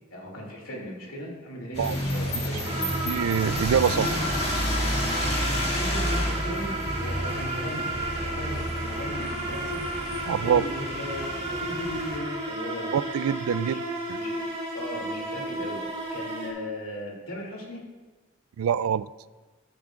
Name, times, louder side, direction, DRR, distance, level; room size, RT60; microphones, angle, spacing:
voice 1, 0.1-2.9 3.9-4.2 5.1-9.8 10.3-12.9 13.5-13.8 14.1-14.5 14.7-15.8 16.1-17.8, left 1 dB, 85° left, -1 dB, 2.7 m, -37 dB
sound 1, 1.7-12.2, equal, 30° left, 2.2 m, -30 dB
sound 2, 2.6-16.5, right 1 dB, 30° right, 2.8 m, -33 dB
voice 2, 3.1-4.1 10.3-10.6 12.9-13.8 14.1-14.2 18.6-19.1, right 8 dB, 85° right, 17 dB, 0.3 m, -24 dB
13.5 x 10.5 x 2.5 m, 1.3 s
head